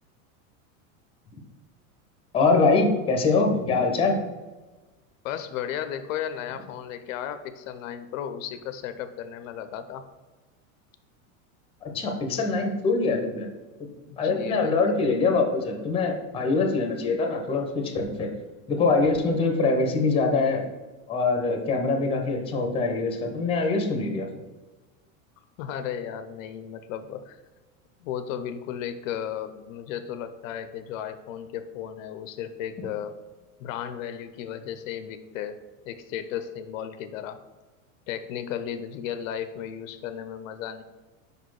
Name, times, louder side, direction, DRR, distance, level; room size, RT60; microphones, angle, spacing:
voice 1, 2.3-4.2 11.9-13.5 13.8-13.9 14.2-18.3 18.7-20.6 21.1-24.3, left 3 dB, 15° left, 3 dB, 0.7 m, -23 dB
voice 2, 5.2-10.1 14.1-14.8 25.6-27.4 28.0-33.2 33.6-35.6 35.8-37.4 38.1-40.8, left 9 dB, 70° left, 11 dB, 0.6 m, -34 dB
5.1 x 4.2 x 4.7 m, 1.2 s
supercardioid pair, 145°, 41 cm